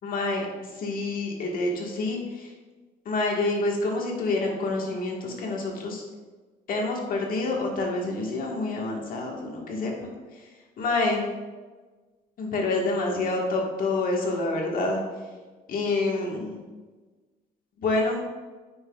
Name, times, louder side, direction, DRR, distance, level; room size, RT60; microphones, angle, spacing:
voice 1, 0.0-0.5 0.8-2.5 3.0-6.0 6.7-10.1 10.8-11.3 12.4-15.0 15.7-16.6 17.8-18.2, left 2 dB, 55° left, 0 dB, 1.5 m, -27 dB
9.3 x 5.8 x 2.4 m, 1.3 s
cardioid pair, 110°, 17 cm